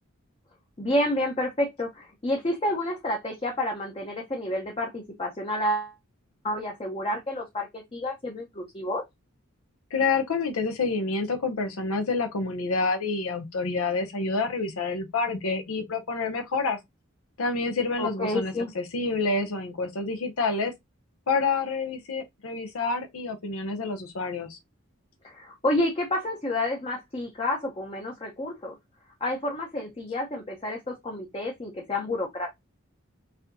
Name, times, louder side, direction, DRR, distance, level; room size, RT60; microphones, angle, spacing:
voice 1, 0.8-5.9 6.4-9.0 18.0-18.7 25.2-28.8 29.2-32.5, left 1 dB, 25° left, 0.7 m, -29 dB
voice 2, 9.9-16.8 17.4-20.7 21.3-24.6, left 4 dB, 85° left, 0.7 m, -28 dB
4.1 x 2.7 x 2.6 m
head